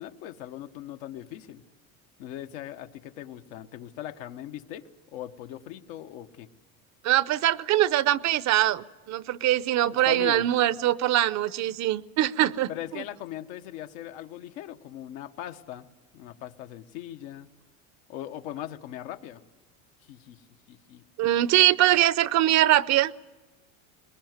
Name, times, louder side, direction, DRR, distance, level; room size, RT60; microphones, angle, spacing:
voice 1, 0.0-1.6 2.2-6.5 10.0-10.5 12.7-15.9 16.1-17.5 18.1-19.4 20.1-20.4 20.7-21.0, left 12 dB, 75° left, 7 dB, 1.4 m, -39 dB
voice 2, 7.0-12.7 21.2-23.1, right 14 dB, 45° right, 18 dB, 0.7 m, -22 dB
21.5 x 20.5 x 9.5 m, 1.2 s
supercardioid pair, 115°, 40 cm